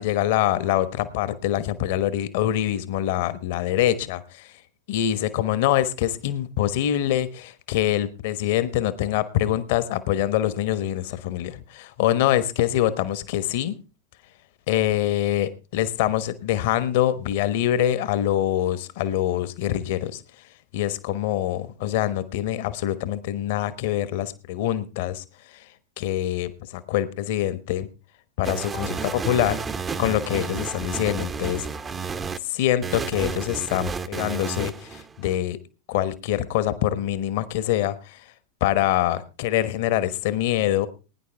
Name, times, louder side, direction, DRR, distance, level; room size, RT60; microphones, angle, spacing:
voice 1, 0.0-4.5 4.9-13.8 14.7-20.2 20.7-25.2 25.5-25.6 26.0-27.9 28.4-29.6 30.0-31.7 32.4-35.6 35.9-38.2 38.6-40.9, left 12 dB, 50° left, 15 dB, 1.2 m, -24 dB
sound 1, 28.4-32.4 32.8-35.4, right 5 dB, 15° right, 0.8 m, -31 dB
20.5 x 10.0 x 3.4 m, 0.32 s
figure-of-eight pair, 90°, 0 cm